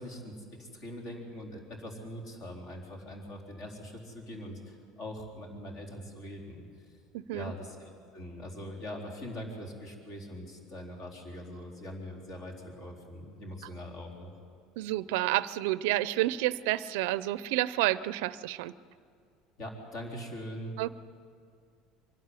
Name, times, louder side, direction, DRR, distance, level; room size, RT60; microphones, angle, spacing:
voice 1, 0.0-6.6 7.3-14.3 19.6-20.8, equal, 45° left, 0 dB, 4.0 m, -42 dB
voice 2, 7.1-7.5 14.8-18.7 20.8-20.9, right 16 dB, 85° right, 16 dB, 0.5 m, -29 dB
24.0 x 12.5 x 9.7 m, 2.2 s
cardioid pair, 160°, 0 cm